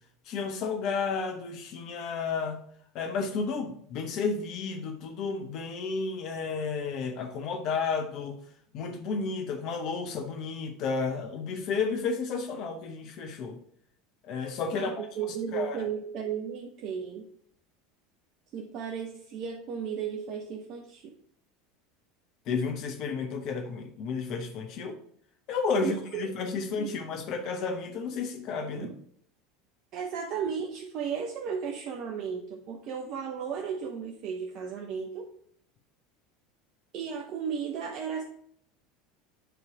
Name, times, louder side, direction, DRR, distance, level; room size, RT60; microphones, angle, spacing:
voice 1, 0.3-2.6 2.9-8.4 8.7-13.6 14.2-15.1 15.5-15.8 22.5-25.0 25.5-28.9, left 5 dB, 50° left, 0.9 m, -32 dB
voice 2, 14.7-17.3 18.5-21.1 25.8-26.2 26.8-26.9 28.7-28.9 29.9-35.3 36.9-38.2, right 7 dB, 50° right, 0.8 m, -34 dB
8.0 x 3.2 x 4.8 m
figure-of-eight pair, 75°, 0 cm